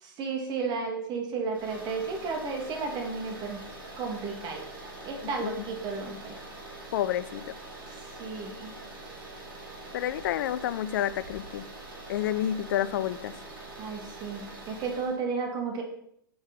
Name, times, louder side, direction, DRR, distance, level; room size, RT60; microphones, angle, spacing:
voice 1, 0.0-3.6 4.0-6.4 8.2-8.7 13.8-16.0, right 4 dB, 35° right, 3 dB, 2.5 m, -33 dB
sound 1, 1.5-15.2, right 2 dB, 70° right, 3.6 m, -44 dB
voice 2, 6.9-7.5 9.9-11.6 12.1-13.3, left 11 dB, 60° left, 16 dB, 0.6 m, -29 dB
7.9 x 7.3 x 5.3 m, 0.72 s
hypercardioid pair, 110°, 12 cm